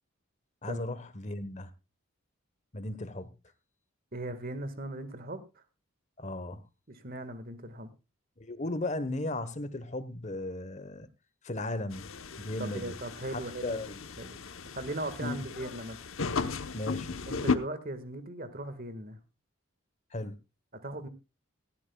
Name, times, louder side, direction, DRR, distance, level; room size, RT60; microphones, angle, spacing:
voice 1, 0.6-1.7 2.7-3.3 6.2-6.6 8.4-11.1 11.4-12.1 12.4-13.0 13.3-14.0 15.2-15.4 16.7-17.2 20.1-20.4, left 2 dB, 35° left, 1.1 m, -36 dB
voice 2, 4.1-5.6 6.9-7.9 12.6-14.4 14.7-16.0 17.3-19.2 20.7-21.1, right 1 dB, 45° right, 1.7 m, -39 dB
sound 1, 11.9-17.6, left 4 dB, 75° left, 1.0 m, -35 dB
18.0 x 13.5 x 2.3 m
head